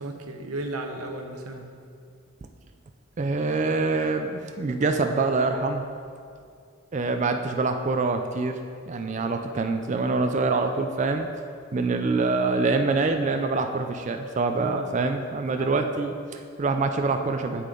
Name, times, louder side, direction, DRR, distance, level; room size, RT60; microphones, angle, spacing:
voice 1, 0.0-1.7 14.6-15.1 15.5-15.7, right 2 dB, 90° right, 4 dB, 0.8 m, -35 dB
voice 2, 3.2-5.8 6.9-8.6 8.9-11.3 11.7-17.7, right 3 dB, 35° right, 6 dB, 0.3 m, -25 dB
8.3 x 7.5 x 3.8 m, 2.3 s
head